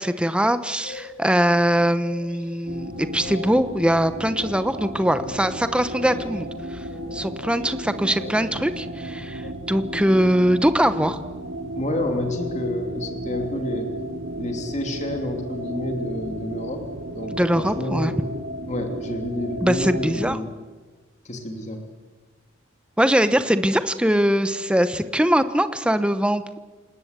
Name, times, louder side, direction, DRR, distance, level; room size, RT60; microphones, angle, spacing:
voice 1, 0.0-6.9 7.1-11.2 17.3-18.1 19.6-20.4 23.0-26.4, equal, 5° right, 11 dB, 0.9 m, -22 dB
sound 1, 0.7-9.5, left 3 dB, 70° left, 4.0 m, -44 dB
sound 2, 2.6-20.4, right 1 dB, 65° right, 2.5 m, -34 dB
voice 2, 11.7-13.9 14.4-18.2 18.7-20.5 21.2-21.9, left 1 dB, 35° left, 4 dB, 2.9 m, -29 dB
28.5 x 18.5 x 8.2 m, 1.3 s
head